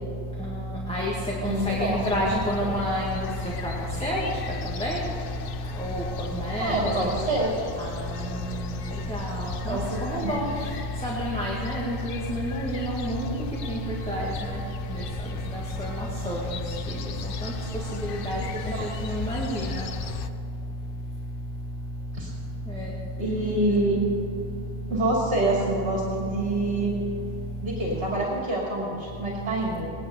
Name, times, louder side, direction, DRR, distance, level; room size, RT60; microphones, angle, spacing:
voice 1, 0.4-1.1 1.4-3.3 3.6-3.7 4.0-4.3 4.8-5.0 5.8-7.1 7.8-8.0 9.1-10.4 11.0-13.4 13.7-13.8 14.1-14.6 14.9-15.0 15.5-16.5 17.4-17.5 18.2-18.4 19.0-19.8 22.7-22.9, equal, 5° left, -5 dB, 1.9 m, -29 dB
sound 1, 1.4-20.3, left 7 dB, 55° left, 0.8 m, -38 dB
voice 2, 1.4-2.7 6.6-7.5 9.7-10.3 18.3-18.5 18.8-18.9 22.1-22.3 23.2-24.0 24.9-27.0 27.6-29.9, right 2 dB, 60° right, -4 dB, 2.7 m, -27 dB
18.5 x 10.5 x 6.9 m, 2.6 s
omnidirectional pair, 1.2 m